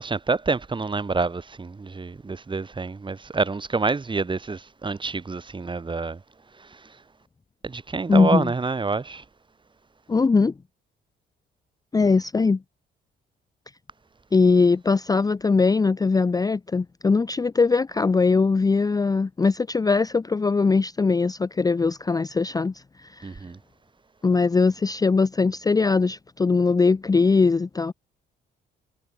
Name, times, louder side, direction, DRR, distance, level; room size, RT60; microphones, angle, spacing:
voice 1, 0.0-6.2 6.6-6.8 7.6-9.2 23.2-23.6, right 4 dB, 25° right, 1.7 m, -27 dB
voice 2, 8.1-8.5 10.1-10.5 11.9-12.6 14.3-22.7 23.0-23.3 24.2-27.9, left 4 dB, 20° left, 0.5 m, -21 dB
cardioid pair, 90°, 20 cm